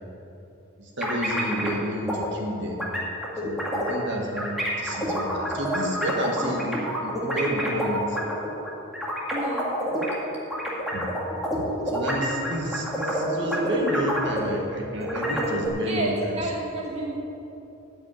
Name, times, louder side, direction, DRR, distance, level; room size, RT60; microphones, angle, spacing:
voice 1, 0.8-2.8 3.4-8.2 10.9-11.1 11.5-16.4, equal, 55° right, 0 dB, 1.7 m, -30 dB
sound 1, 1.0-1.8 2.1-2.3 2.8-4.1 4.4-10.1 10.5-14.7 15.0-15.7, equal, ahead, 2.0 m, -28 dB
voice 2, 9.3-9.7 15.8-17.2, right 2 dB, 30° right, -3 dB, 1.4 m, -30 dB
13.5 x 5.4 x 9.2 m, 2.9 s
head